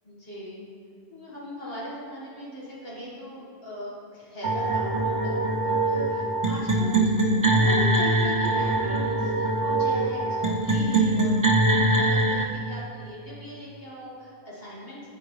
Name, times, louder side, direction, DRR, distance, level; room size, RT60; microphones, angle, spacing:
voice 1, 0.1-0.7 1.1-15.1, equal, 65° left, -6 dB, 1.8 m, -39 dB
sound 1, 4.4-12.4, right 2 dB, 25° right, 0.4 m, -23 dB
8.5 x 7.6 x 3.1 m, 2.5 s
omnidirectional pair, 1.1 m